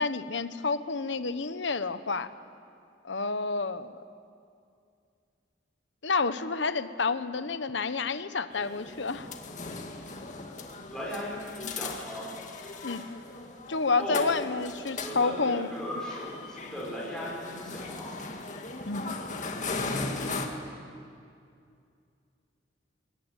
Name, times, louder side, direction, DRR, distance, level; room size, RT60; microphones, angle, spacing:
voice 1, 0.0-2.3 3.0-3.9 6.0-9.3 12.8-13.0 13.7-15.7 18.9-19.2, left 4 dB, 75° left, 12 dB, 1.1 m, -29 dB
sound 1, 8.5-20.5, left 3 dB, 40° left, 2.1 m, -38 dB
voice 2, 10.9-12.3 14.0-14.3 15.0-18.2, left 1 dB, 5° left, -6 dB, 6.7 m, -37 dB
22.0 x 20.5 x 9.2 m, 2.4 s
head